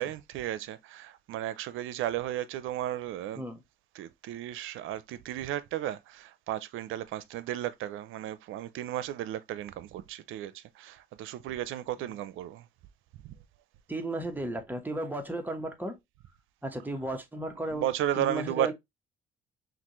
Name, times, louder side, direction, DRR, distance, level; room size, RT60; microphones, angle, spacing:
voice 1, 0.0-3.4 3.9-12.7 13.2-13.3 17.6-18.7, right 12 dB, 90° right, 0.6 m, -34 dB
voice 2, 13.9-16.0 16.6-17.9 18.2-18.7, right 1 dB, 10° right, 1.1 m, -34 dB
5.9 x 2.5 x 3.0 m
cardioid pair, 90°, 20 cm